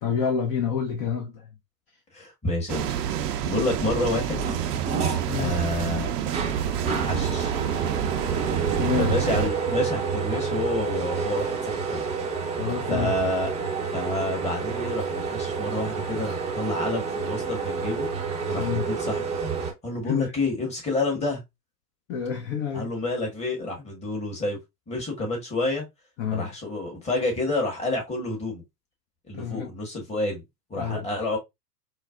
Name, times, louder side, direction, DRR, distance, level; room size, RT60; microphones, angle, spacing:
voice 1, 0.0-1.5 3.3-3.4 5.3-5.6 8.8-9.1 12.6-13.1 18.6-18.9 20.0-20.3 22.1-22.9 26.2-26.5 29.3-29.7 30.8-31.1, left 7 dB, 30° left, 0.6 m, -28 dB
voice 2, 2.1-4.4 5.4-6.1 6.9-7.5 9.0-12.1 12.9-13.5 13.9-18.1 18.5-19.2 19.8-21.4 22.7-24.6 24.9-25.8 26.3-28.6 29.3-30.4 30.7-31.4, left 2 dB, 15° left, 1.3 m, -29 dB
sound 1, 2.7-9.5, right 9 dB, 75° right, 0.6 m, -28 dB
sound 2, 4.3-19.7, right 5 dB, 15° right, 0.6 m, -29 dB
4.5 x 2.0 x 2.3 m
hypercardioid pair, 110°, 49 cm